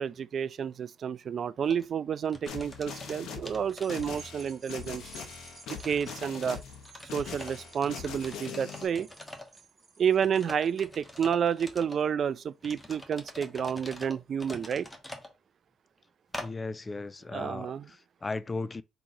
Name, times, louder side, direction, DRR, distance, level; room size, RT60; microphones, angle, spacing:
voice 1, 0.0-5.0 5.7-6.6 7.1-9.1 10.0-14.9 17.3-17.8, right 7 dB, 55° right, 0.3 m, -30 dB
sound 1, 1.6-1.8 2.3-4.5 4.9-5.0 5.6-6.6 6.9-9.6 10.2-12.0 12.6-15.3 16.3-16.5, left 1 dB, 15° left, 1.3 m, -45 dB
sound 2, 2.5-8.9, left 7 dB, 75° left, 0.9 m, -42 dB
sound 3, 3.6-12.3 12.8-12.9, right 4 dB, 20° right, 2.4 m, -54 dB
voice 2, 16.4-18.8, left 3 dB, 30° left, 0.3 m, -36 dB
3.8 x 2.9 x 4.7 m
supercardioid pair, 65°, 0 cm